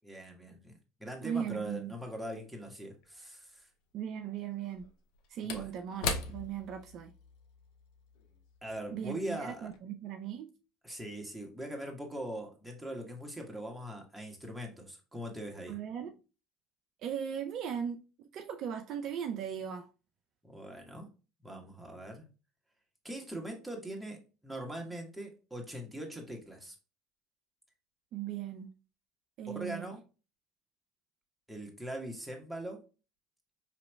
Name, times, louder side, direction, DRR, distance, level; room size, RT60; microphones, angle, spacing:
voice 1, 0.0-3.7 5.4-5.7 8.6-9.7 10.8-15.8 20.4-21.1 21.4-22.3 23.0-26.7 29.5-30.0 31.5-32.8, right 1 dB, 5° right, 1.3 m, -41 dB
voice 2, 1.2-1.9 3.9-4.9 5.3-7.1 8.9-10.5 15.7-16.1 17.0-18.0 18.3-19.9 28.1-28.7 29.4-29.9, right 8 dB, 55° right, 0.4 m, -38 dB
Slam / Wood, 3.0-3.1 4.6-9.3 9.6-9.8, left 4 dB, 70° left, 0.5 m, -40 dB
4.9 x 2.9 x 2.2 m
hypercardioid pair, 75°, 0 cm